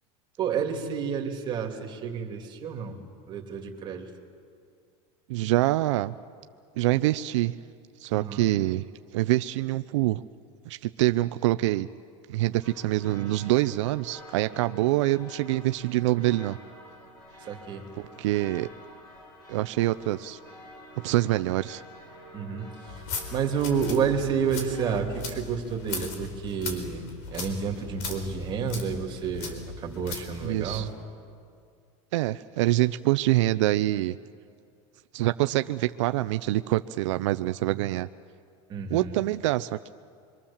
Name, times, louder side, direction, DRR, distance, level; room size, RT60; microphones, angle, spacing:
voice 1, 0.4-3.0 3.3-4.1 8.1-8.4 17.4-17.8 22.3-22.6 23.3-27.0 27.3-30.9 38.7-39.1, right 6 dB, 30° right, 2 dB, 2.7 m, -30 dB
voice 2, 5.3-6.1 6.8-7.6 8.0-8.8 9.1-10.2 10.7-11.9 12.3-16.6 18.0-18.7 19.5-20.4 21.0-21.8 30.4-30.9 32.1-34.2 35.1-38.1 38.9-39.9, right 16 dB, 85° right, 12 dB, 0.6 m, -25 dB
sound 1, 12.6-25.0, left 1 dB, 25° left, 7.0 m, -49 dB
sound 2, 22.9-30.9, left 5 dB, 65° left, 4.2 m, -38 dB
27.5 x 23.5 x 7.3 m, 2.3 s
supercardioid pair, 150°, 15 cm